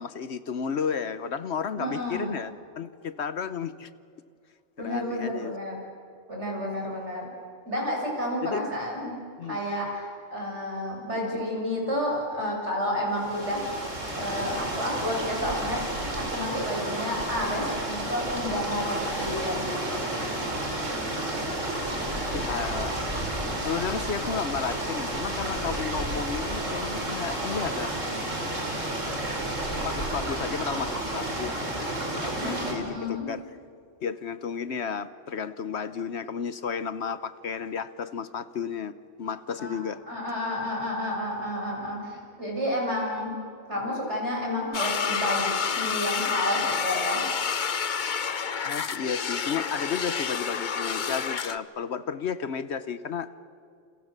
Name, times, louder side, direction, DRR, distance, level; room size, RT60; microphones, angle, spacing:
voice 1, 0.0-3.9 4.8-5.5 8.4-8.6 9.4-9.6 22.3-23.0 23.6-28.2 29.8-33.4 34.0-38.9 39.2-40.0 48.6-53.3, left 6 dB, 65° left, 14 dB, 1.1 m, -33 dB
voice 2, 1.8-2.3 4.8-5.8 6.3-7.3 7.7-9.1 9.5-13.7 14.2-15.8 16.2-20.0 32.4-33.3 39.6-39.7 40.1-43.3 43.7-47.3, left 1 dB, 65° right, -1 dB, 7.6 m, -30 dB
sound 1, 13.1-32.7, right 1 dB, 80° right, 4.8 m, -31 dB
sound 2, 44.7-51.6, left 6 dB, 45° left, 0.9 m, -29 dB
29.5 x 29.0 x 6.7 m, 2.4 s
omnidirectional pair, 1.3 m